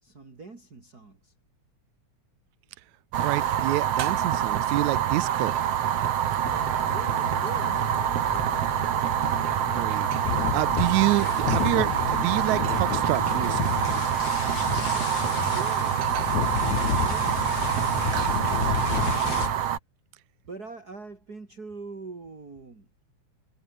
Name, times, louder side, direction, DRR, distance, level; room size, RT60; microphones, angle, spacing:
voice 1, 0.0-1.3 6.8-7.9 14.9-17.5 17.9-19.5 20.4-23.0, right 3 dB, 30° right, 4.0 m, -43 dB
Fire, 3.1-19.8, right 10 dB, 60° right, 2.3 m, -26 dB
voice 2, 3.2-5.6 9.7-10.3 10.5-13.7, right 17 dB, 80° right, 2.0 m, -27 dB
sound 1, 6.4-19.6, left 7 dB, 40° left, 1.5 m, -39 dB
sound 2, 10.2-19.5, left 7 dB, 75° left, 3.9 m, -31 dB
omnidirectional pair, 3.3 m